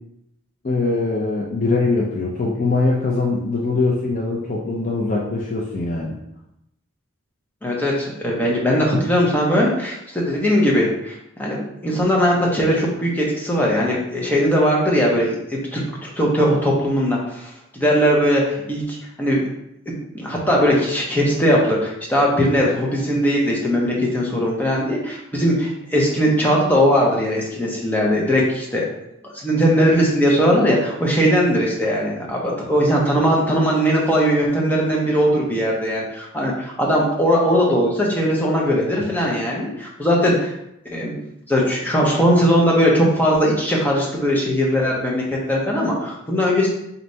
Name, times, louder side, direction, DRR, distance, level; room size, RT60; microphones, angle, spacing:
voice 1, 0.6-6.2 12.0-12.1, left 3 dB, 35° left, -2 dB, 0.4 m, -22 dB
voice 2, 7.6-19.5 19.9-28.9 29.3-40.5 40.9-41.1 41.5-46.7, equal, 10° left, -3 dB, 0.7 m, -19 dB
4.0 x 3.3 x 2.7 m, 0.81 s
head